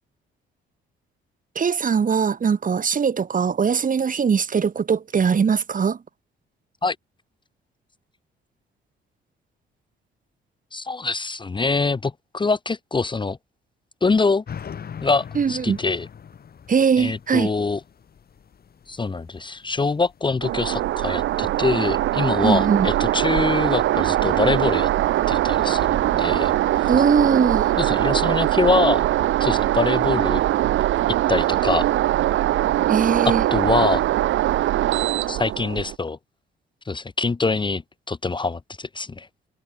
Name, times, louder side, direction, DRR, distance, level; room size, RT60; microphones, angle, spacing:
voice 1, 1.6-6.0 15.4-15.8 16.7-17.5 22.4-22.9 26.9-27.7 32.9-33.4, right 6 dB, 45° right, 3.7 m, -21 dB
voice 2, 10.7-13.4 14.0-14.4 15.0-16.1 17.0-17.8 18.9-24.9 25.3-26.9 27.8-29.1 29.4-30.4 31.3-31.9 33.2-34.0 35.3-36.2 36.9-37.8 38.1-39.3, left 4 dB, 25° left, 1.2 m, -24 dB
sound 1, 14.5-20.3, left 7 dB, 50° left, 5.9 m, -41 dB
sound 2, 20.4-36.0, right 14 dB, 75° right, 1.0 m, -21 dB
cardioid pair, 90°, 20 cm